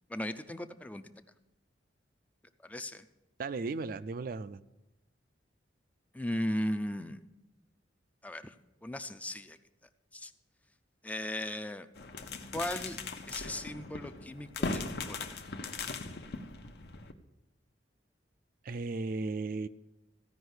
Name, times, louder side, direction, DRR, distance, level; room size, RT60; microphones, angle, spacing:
voice 1, 0.1-1.0 2.6-3.1 6.1-7.2 8.2-8.5 8.8-9.6 10.1-10.3 11.0-11.9 12.5-13.0 13.3-15.4, left 1 dB, 10° left, 10 dB, 0.4 m, -37 dB
voice 2, 3.4-4.6 18.6-19.7, right 3 dB, 50° right, 13 dB, 0.4 m, -35 dB
sound 1, 12.0-17.1, left 3 dB, 60° left, 0.8 m, -39 dB
15.0 x 5.4 x 8.0 m, 0.95 s
head